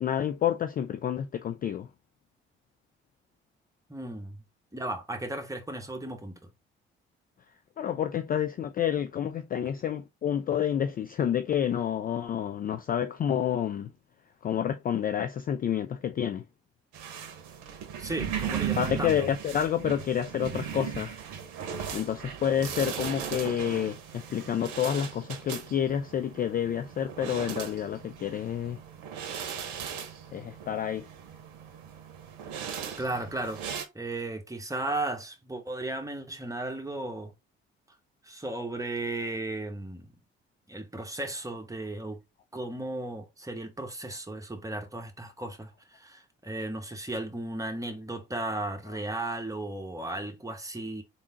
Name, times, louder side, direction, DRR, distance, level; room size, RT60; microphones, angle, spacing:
voice 1, 0.0-1.9 7.8-13.9 14.4-16.4 18.8-21.2 21.9-28.8 30.3-31.1, left 9 dB, 30° left, 0.4 m, -29 dB
voice 2, 3.9-4.4 4.7-6.5 18.0-19.3 33.0-33.6 33.9-37.3 38.2-40.1 40.7-42.2 42.5-51.0, right 2 dB, 10° right, 1.1 m, -35 dB
sound 1, 16.9-33.8, right 8 dB, 60° right, 0.8 m, -37 dB
3.6 x 2.7 x 3.8 m
figure-of-eight pair, 45°, 32 cm